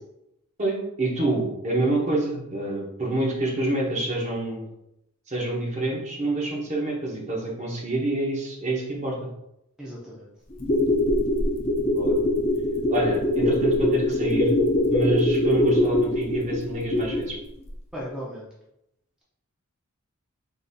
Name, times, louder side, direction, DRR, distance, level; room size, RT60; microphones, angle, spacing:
voice 1, 0.6-4.7 5.3-9.2 11.9-12.1 12.9-14.5 14.9-17.4, right 2 dB, 30° right, -2 dB, 1.1 m, -27 dB
voice 2, 9.8-10.3 17.9-18.5, equal, 5° right, -6 dB, 0.8 m, -36 dB
sound 1, 10.5-17.4 17.7-17.8, left 1 dB, 30° left, 0.7 m, -22 dB
3.9 x 2.7 x 4.1 m, 0.82 s
head